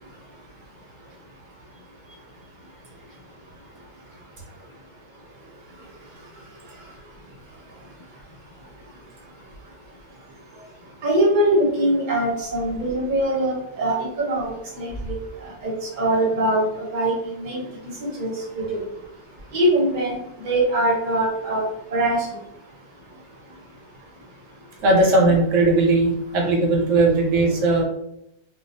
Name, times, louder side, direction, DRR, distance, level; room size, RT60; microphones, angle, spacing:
voice 1, 11.0-15.2 15.6-17.6 18.0-18.8 19.5-20.2 20.4-21.6 21.9-22.3, right 1 dB, 40° right, -4 dB, 0.9 m, -22 dB
voice 2, 24.8-27.8, right 2 dB, 90° right, 1 dB, 1.0 m, -18 dB
2.3 x 2.2 x 2.7 m, 0.81 s
omnidirectional pair, 1.3 m